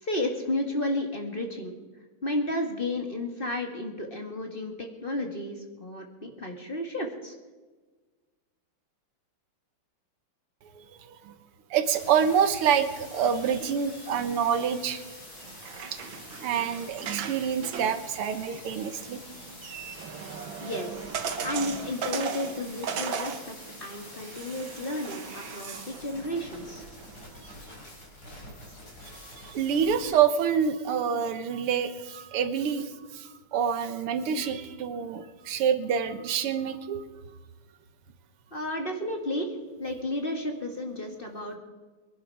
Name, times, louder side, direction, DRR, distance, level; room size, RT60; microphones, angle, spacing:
voice 1, 0.0-1.8 2.2-7.3 20.6-21.0 21.4-26.8 38.5-39.5 39.8-41.6, left 1 dB, 25° left, 3 dB, 1.9 m, -32 dB
voice 2, 10.8-11.4 11.7-15.0 15.9-16.0 16.4-19.2 29.4-37.0, right 7 dB, 85° right, 10 dB, 2.0 m, -27 dB
sound 1, 11.8-30.1, left 1 dB, 50° left, 5.5 m, -46 dB
sound 2, 15.4-27.6, right 6 dB, 65° right, 1.9 m, -38 dB
23.5 x 11.0 x 4.8 m, 1.3 s
omnidirectional pair, 2.4 m